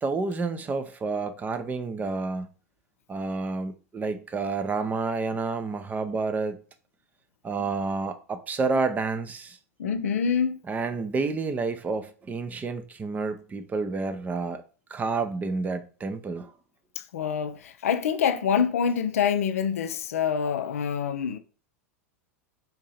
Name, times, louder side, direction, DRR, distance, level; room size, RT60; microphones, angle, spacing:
voice 1, 0.0-2.5 3.1-6.6 7.4-9.6 10.7-14.6 14.9-16.5, right 4 dB, 20° right, 0.5 m, -29 dB
voice 2, 9.8-10.6 17.0-21.4, left 7 dB, 70° left, 0.4 m, -26 dB
3.8 x 2.8 x 4.1 m
figure-of-eight pair, 90°, 8 cm